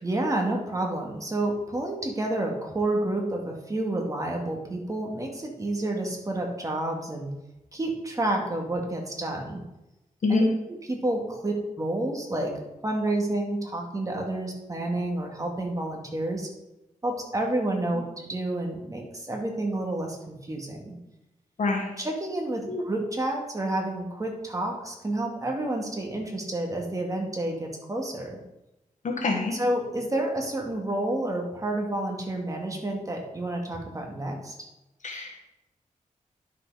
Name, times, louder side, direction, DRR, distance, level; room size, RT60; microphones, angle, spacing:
voice 1, 0.0-7.3 7.7-9.6 10.3-12.5 12.8-16.5 17.0-20.9 22.0-28.4 29.5-34.5, right 1 dB, 25° right, 1 dB, 2.1 m, -29 dB
voice 2, 21.6-21.9 22.7-22.8 29.0-29.6 30.1-30.2 35.0-35.4, left 3 dB, 65° left, 1 dB, 1.6 m, -26 dB
11.0 x 6.7 x 4.9 m, 0.95 s
wide cardioid pair, 120°, 14 cm